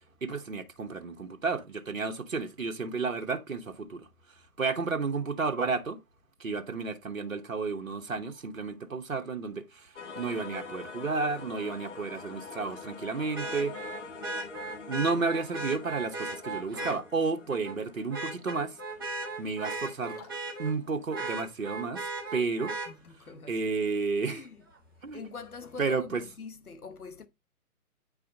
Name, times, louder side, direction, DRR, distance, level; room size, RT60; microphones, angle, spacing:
voice 1, 0.2-4.1 4.6-6.0 6.4-13.9 14.9-18.8 19.4-20.2 20.6-22.7 23.5-24.4 25.0-25.2 25.8-26.2, right 4 dB, 65° right, 1.2 m, -32 dB
sound 1, 10.0-20.8, left 5 dB, 55° left, 1.4 m, -46 dB
Vehicle horn car horn honking, 10.5-10.6 13.3-17.0 17.5-17.8 18.1-20.7 21.1-22.9 24.7-24.8, right 3 dB, 15° right, 0.8 m, -36 dB
sound 2, 19.7-21.2 21.6-21.7, left 5 dB, 25° left, 1.7 m, -53 dB
voice 2, 22.8-23.6 24.3-24.6 25.1-27.3, left 4 dB, 75° left, 1.1 m, -44 dB
9.0 x 4.7 x 3.9 m
figure-of-eight pair, 140°, 44 cm